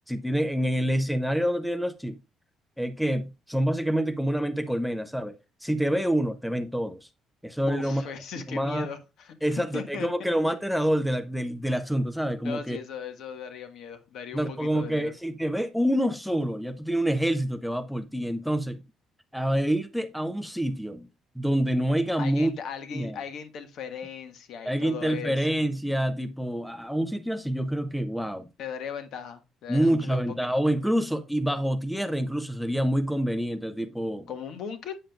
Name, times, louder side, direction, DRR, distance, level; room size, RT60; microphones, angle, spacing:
voice 1, 0.1-2.2 2.8-5.4 5.6-7.1 7.4-8.0 8.5-8.9 9.4-12.8 14.3-18.8 19.3-21.1 21.4-22.5 22.9-23.2 24.6-28.5 29.7-34.3, equal, ahead, 0.5 m, -27 dB
voice 2, 7.7-9.3 9.7-10.1 12.4-15.1 22.2-25.5 28.6-30.5 34.3-35.0, left 7 dB, 55° left, 1.5 m, -38 dB
8.8 x 7.3 x 2.4 m
cardioid pair, 170°, 0 cm